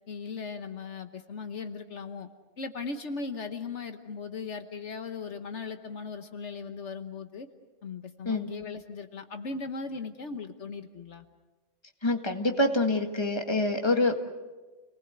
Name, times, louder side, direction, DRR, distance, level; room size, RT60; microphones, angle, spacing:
voice 1, 0.1-2.3 2.6-7.5 7.8-11.2, left 4 dB, 70° left, 8 dB, 1.4 m, -38 dB
voice 2, 12.0-14.3, left 2 dB, 20° left, 5 dB, 1.8 m, -26 dB
29.5 x 19.5 x 8.0 m, 1.2 s
omnidirectional pair, 1.2 m